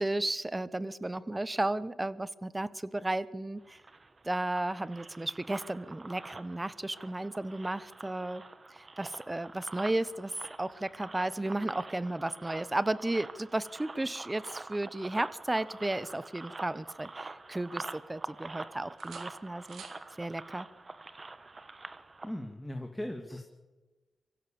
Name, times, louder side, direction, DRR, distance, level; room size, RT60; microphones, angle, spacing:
voice 1, 0.0-3.8 4.2-8.4 8.7-10.3 10.6-19.8 20.2-20.7, right 2 dB, 20° right, 17 dB, 1.1 m, -34 dB
sound 1, 3.6-22.3, right 3 dB, 40° right, 1.4 m, -46 dB
sound 2, 16.4-17.4 17.8-18.6 19.0-20.1 21.9-22.1, right 6 dB, 75° right, 2.1 m, -55 dB
voice 2, 22.2-23.4, left 1 dB, 10° left, 4 dB, 2.4 m, -38 dB
24.5 x 16.0 x 7.2 m, 1.2 s
supercardioid pair, 50°, 0 cm